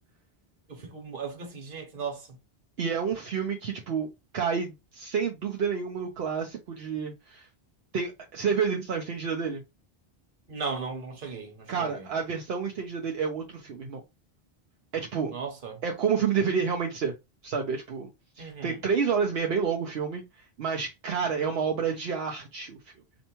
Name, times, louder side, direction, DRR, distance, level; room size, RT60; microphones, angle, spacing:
voice 1, 0.7-2.3 10.5-12.1 15.3-15.8 18.4-18.8, right 5 dB, 60° right, 1.3 m, -36 dB
voice 2, 2.8-4.1 4.3-7.5 7.9-9.6 11.7-14.0 14.9-15.3 15.8-17.1 17.4-18.1 18.4-22.8, right 6 dB, 75° right, 0.9 m, -29 dB
4.4 x 2.7 x 2.8 m
omnidirectional pair, 1.0 m